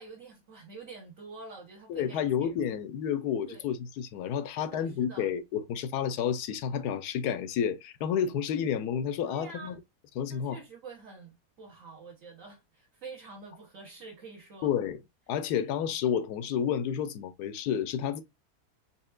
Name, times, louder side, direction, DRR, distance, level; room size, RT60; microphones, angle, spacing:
voice 1, 0.0-2.7 3.5-3.6 4.6-5.3 9.2-9.8 10.3-14.7, right 4 dB, 55° right, 1.3 m, -47 dB
voice 2, 1.9-9.7 10.2-10.6 14.6-15.0 15.3-18.2, left 8 dB, 80° left, 1.1 m, -30 dB
4.3 x 3.5 x 2.3 m
omnidirectional pair, 1.7 m